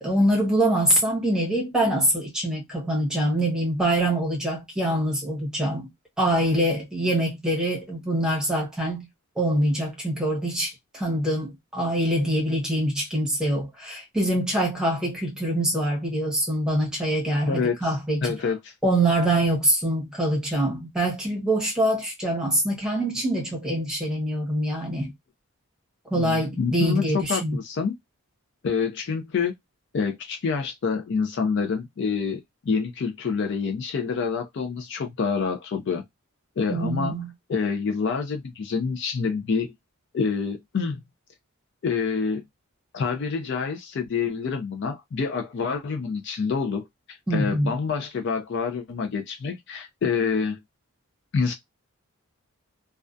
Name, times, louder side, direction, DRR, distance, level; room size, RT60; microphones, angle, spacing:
voice 1, 0.0-5.9 6.2-9.1 9.4-18.2 18.8-25.1 26.1-27.6 36.7-37.3 47.3-47.7, right 1 dB, 5° right, 0.8 m, -24 dB
voice 2, 17.5-18.0 18.2-18.7 26.1-27.9 28.6-29.5 29.9-36.0 36.6-37.1 37.5-39.7 40.1-41.0 41.8-42.4 42.9-50.6 51.3-51.5, left 5 dB, 50° left, 0.3 m, -27 dB
2.3 x 2.2 x 2.5 m
head